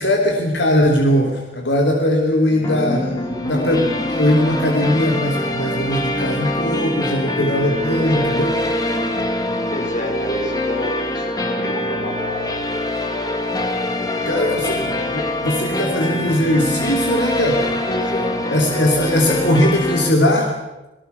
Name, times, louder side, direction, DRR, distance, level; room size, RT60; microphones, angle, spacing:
voice 1, 0.0-3.1 3.4-8.5 14.3-14.8 15.1-17.7 18.5-20.5, left 1 dB, 75° left, 2 dB, 3.2 m, -19 dB
voice 2, 2.5-4.1 7.9-8.4 9.3-13.0 13.8-15.1 17.9-18.4, equal, 45° left, 2 dB, 5.5 m, -30 dB
sound 1, 2.6-20.1, left 1 dB, 20° left, 2.4 m, -24 dB
28.0 x 19.0 x 7.0 m, 1.0 s
head